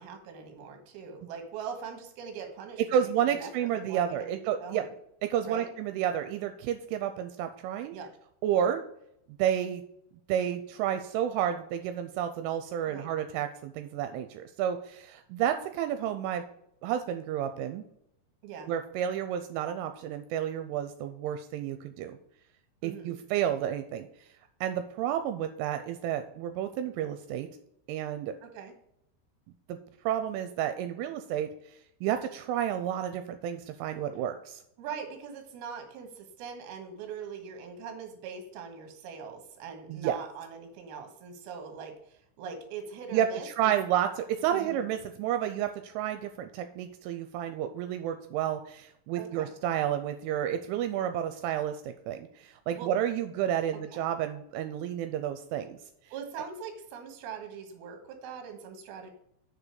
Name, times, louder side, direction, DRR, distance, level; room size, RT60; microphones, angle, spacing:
voice 1, 0.0-4.3 4.6-4.9 5.4-5.7 7.9-8.1 12.9-13.1 18.4-18.7 22.8-23.2 28.4-28.7 34.8-43.7 44.5-44.9 49.2-49.5 52.7-52.9 53.7-54.0 56.1-59.1, right 6 dB, 65° right, 5 dB, 2.9 m, -42 dB
voice 2, 2.9-4.8 5.2-8.0 8.4-8.8 9.4-9.8 10.3-16.4 16.8-17.8 18.7-22.2 22.8-24.1 24.6-27.5 27.9-28.3 29.7-29.8 30.1-31.5 32.0-34.6 39.9-40.2 43.1-55.8, right 10 dB, 85° right, 8 dB, 3.0 m, -31 dB
6.8 x 5.0 x 6.3 m, 0.75 s
omnidirectional pair, 5.7 m